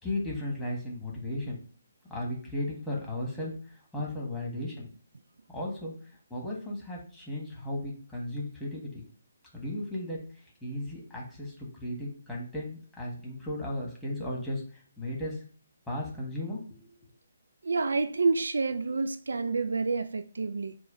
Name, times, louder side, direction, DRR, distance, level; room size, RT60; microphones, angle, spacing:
voice 1, 0.0-1.6 2.1-4.9 5.5-5.9 6.3-9.0 9.5-11.5 11.8-15.4 15.9-16.9, left 1 dB, 5° left, 1.4 m, -35 dB
voice 2, 17.6-20.8, right 4 dB, 70° right, 0.3 m, -28 dB
4.8 x 2.3 x 4.6 m
figure-of-eight pair, 140°, 0 cm